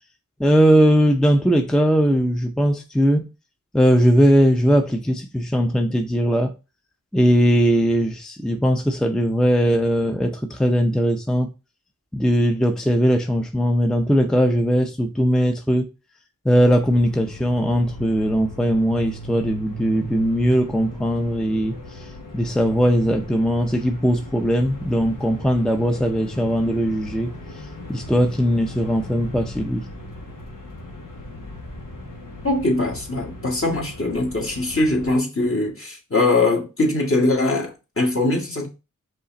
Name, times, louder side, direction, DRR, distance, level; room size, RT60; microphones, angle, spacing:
voice 1, 0.4-3.2 3.7-6.5 7.1-11.5 12.1-15.9 16.4-22.1 22.3-27.3 27.9-29.9, equal, ahead, 0.5 m, -19 dB
sound 1, 16.5-35.2, left 1 dB, 85° left, 1.1 m, -38 dB
voice 2, 32.4-38.7, left 2 dB, 45° left, 1.5 m, -22 dB
5.3 x 2.5 x 3.9 m
wide cardioid pair, 50°, 32 cm